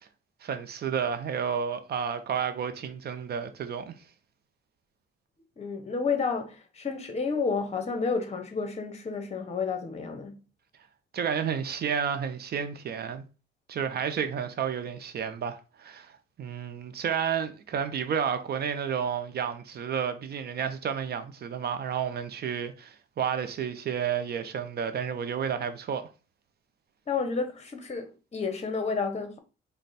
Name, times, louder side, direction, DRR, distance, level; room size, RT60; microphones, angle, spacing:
voice 1, 0.4-3.9 11.1-13.2 13.7-16.1 16.4-26.1, right 7 dB, 55° right, 0.6 m, -31 dB
voice 2, 5.6-10.4 27.1-29.4, left 5 dB, 35° left, 0.9 m, -31 dB
4.3 x 2.2 x 4.0 m
cardioid pair, 90°, 20 cm